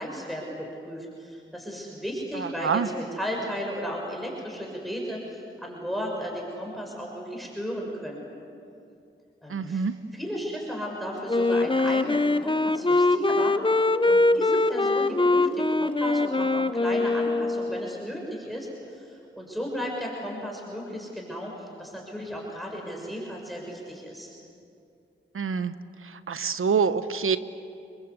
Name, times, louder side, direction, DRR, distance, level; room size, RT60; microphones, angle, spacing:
voice 1, 0.0-8.5 9.4-9.8 10.1-24.3, equal, ahead, -1 dB, 6.5 m, -35 dB
voice 2, 2.4-2.9 9.5-9.9 25.3-25.7 26.0-27.4, right 6 dB, 90° right, 12 dB, 1.0 m, -26 dB
Wind instrument woodwind instrument, 11.3-17.9, left 2 dB, 25° left, 0.9 m, -23 dB
30.0 x 23.5 x 8.2 m, 2.6 s
cardioid pair, 40°, 21 cm